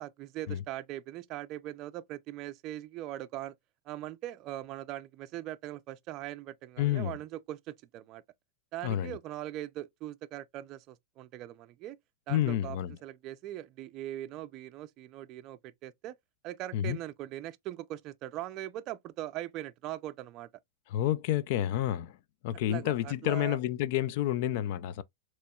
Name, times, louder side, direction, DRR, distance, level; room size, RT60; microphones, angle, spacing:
voice 1, 0.0-3.5 3.9-8.2 8.7-12.0 12.3-16.2 16.4-20.5 22.7-23.6, right 14 dB, 40° right, 0.4 m, -41 dB
voice 2, 6.8-7.2 8.8-9.2 12.3-12.9 16.7-17.0 20.9-22.2 22.4-25.0, left 12 dB, 60° left, 0.4 m, -29 dB
4.2 x 3.0 x 2.3 m
hypercardioid pair, 130°, 0 cm